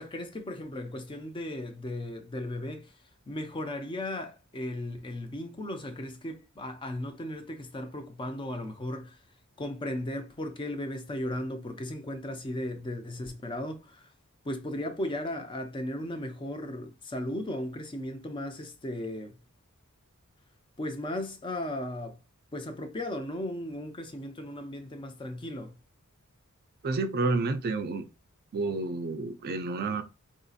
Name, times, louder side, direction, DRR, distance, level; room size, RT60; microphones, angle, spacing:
voice 1, 0.0-3.0 3.3-9.2 9.6-14.1 14.4-19.4 20.8-22.2 22.5-25.7, left 1 dB, 25° left, 0.5 m, -36 dB
voice 2, 26.8-28.0 28.5-30.0, right 3 dB, 45° right, 0.4 m, -29 dB
3.8 x 2.6 x 2.4 m
head